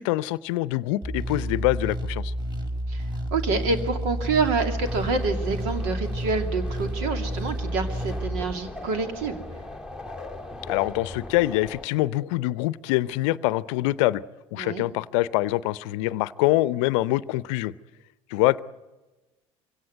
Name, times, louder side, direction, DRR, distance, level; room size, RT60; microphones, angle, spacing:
voice 1, 0.0-2.3 10.7-14.2 14.5-17.7 18.3-18.6, left 17 dB, 70° left, 19 dB, 0.7 m, -24 dB
sound 1, 1.0-8.5, equal, 25° right, 5.1 m, -30 dB
voice 2, 3.3-9.4 14.6-14.8, right 4 dB, 70° right, 6 dB, 2.6 m, -27 dB
sound 2, 4.8-11.9, left 2 dB, 5° right, 1.7 m, -39 dB
24.0 x 17.0 x 9.4 m, 1.2 s
hypercardioid pair, 70°, 17 cm